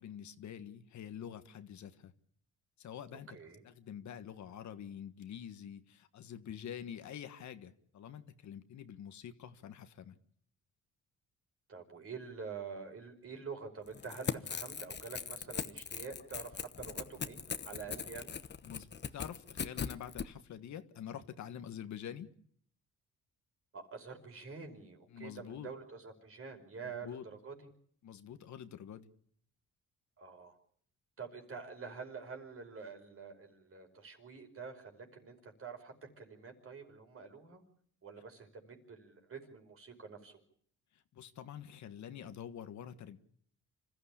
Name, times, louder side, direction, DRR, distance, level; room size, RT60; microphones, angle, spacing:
voice 1, 0.0-2.1 2.8-3.3 3.6-10.1 18.6-22.3 25.1-25.7 26.8-27.2 28.0-29.1 41.1-43.2, left 9 dB, 70° left, 1.5 m, -46 dB
voice 2, 3.3-3.6 11.7-18.3 23.7-27.5 30.2-30.6 31.2-37.6 38.0-40.4, right 5 dB, 45° right, 5.3 m, -47 dB
Crackle / Tearing, 13.9-20.3, left 6 dB, 35° left, 1.1 m, -40 dB
26.0 x 14.0 x 8.5 m
cardioid pair, 90°, 30 cm